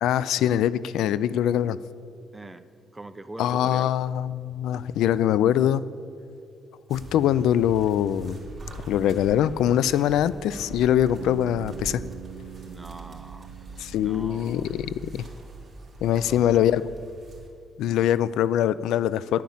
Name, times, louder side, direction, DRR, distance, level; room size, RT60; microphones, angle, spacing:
voice 1, 0.0-1.8 3.4-5.8 6.9-8.4 8.9-12.0 13.8-15.2 16.0-16.8 17.8-19.4, left 11 dB, 85° left, 17 dB, 0.3 m, -23 dB
voice 2, 2.3-2.6 2.9-3.9 12.6-14.9 16.1-16.7, right 2 dB, 15° right, 11 dB, 0.7 m, -43 dB
sound 1, 6.9-17.5, right 2 dB, 30° right, 3.1 m, -42 dB
Bass guitar, 11.2-15.3, right 13 dB, 90° right, 0.3 m, -44 dB
10.5 x 9.3 x 7.2 m, 2.4 s
cardioid pair, 90°, 0 cm